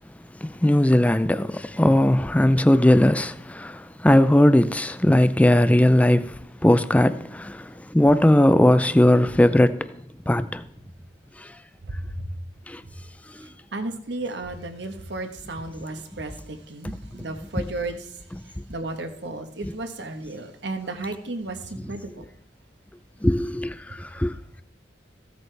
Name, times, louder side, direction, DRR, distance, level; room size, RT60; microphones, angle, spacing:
voice 1, 0.4-6.3 6.6-7.7 7.9-9.9 10.3-10.6 12.7-12.8 19.6-19.7 23.2-24.3, left 1 dB, 10° left, 0.4 m, -18 dB
voice 2, 11.9-12.3 13.7-18.1 18.7-22.2, right 2 dB, 70° right, 1.2 m, -33 dB
15.5 x 8.3 x 3.4 m
head